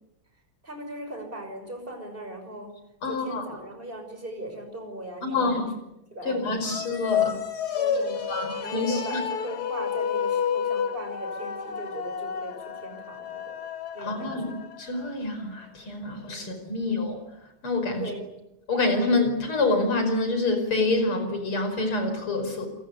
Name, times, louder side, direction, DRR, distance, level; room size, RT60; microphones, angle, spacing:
voice 1, 0.6-2.7 3.0-5.6 6.1-6.7 7.7-8.2 8.6-13.5 13.9-14.4 16.4-16.5 18.0-18.2, right 1 dB, 25° right, 5 dB, 6.5 m, -39 dB
voice 2, 3.0-3.4 5.2-5.7 6.3-7.4 8.3-9.0 14.0-14.5 14.8-17.2 17.6-18.1 18.7-22.7, left 2 dB, 80° left, 7 dB, 5.9 m, -26 dB
sound 1, 6.6-15.1, left 7 dB, 50° left, 1.8 m, -30 dB
28.5 x 22.0 x 8.3 m, 0.89 s
omnidirectional pair, 2.3 m